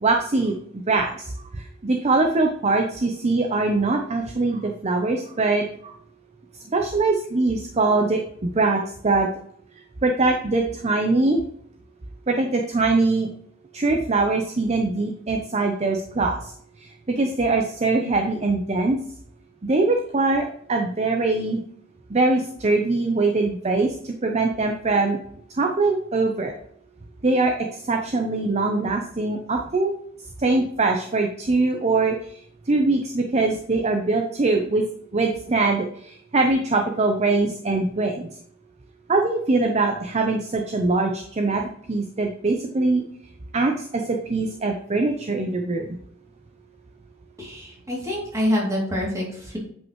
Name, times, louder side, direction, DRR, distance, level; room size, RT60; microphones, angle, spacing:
voice 1, 0.0-5.9 6.7-9.3 10.0-11.4 12.3-13.3 13.7-16.5 16.8-19.0 19.6-21.6 22.1-25.2 25.6-26.6 27.2-29.9 30.4-34.8 35.1-38.3 39.1-41.6 41.9-43.0 43.5-45.9, right 3 dB, 35° right, 3 dB, 0.7 m, -22 dB
voice 2, 47.4-49.6, left 1 dB, 15° right, -3 dB, 2.7 m, -26 dB
9.0 x 5.3 x 3.1 m, 0.67 s
head